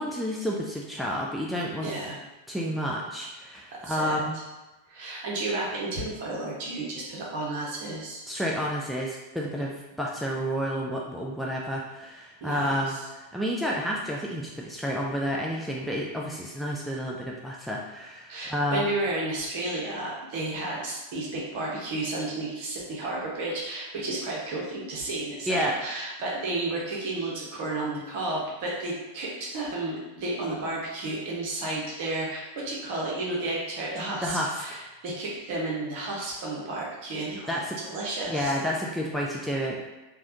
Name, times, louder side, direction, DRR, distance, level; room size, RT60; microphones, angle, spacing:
voice 1, 0.0-1.9 2.5-4.3 8.3-18.8 25.5-25.7 34.2-34.8 37.5-37.8 38.3-39.8, equal, ahead, -4 dB, 0.4 m, -30 dB
voice 2, 1.8-2.2 3.8-4.4 4.9-8.3 12.4-13.0 18.3-38.6, right 2 dB, 50° right, -4 dB, 0.9 m, -32 dB
3.3 x 2.3 x 2.6 m, 1.1 s
figure-of-eight pair, 90°, 0 cm